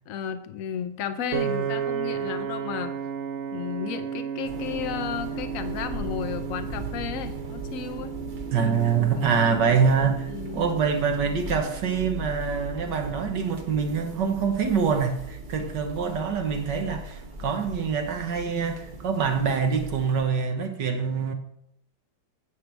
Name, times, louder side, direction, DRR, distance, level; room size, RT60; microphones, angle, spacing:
voice 1, 0.1-2.9 3.5-8.1 9.2-9.4 10.3-10.7, left 8 dB, 60° left, 10 dB, 0.9 m, -33 dB
Piano, 1.3-13.6, right 8 dB, 85° right, 0.6 m, -34 dB
sound 1, 4.4-20.2, right 1 dB, 45° right, 0.6 m, -39 dB
voice 2, 8.5-21.3, right 6 dB, 65° right, 5 dB, 1.5 m, -25 dB
10.5 x 8.4 x 3.4 m, 0.76 s
omnidirectional pair, 2.2 m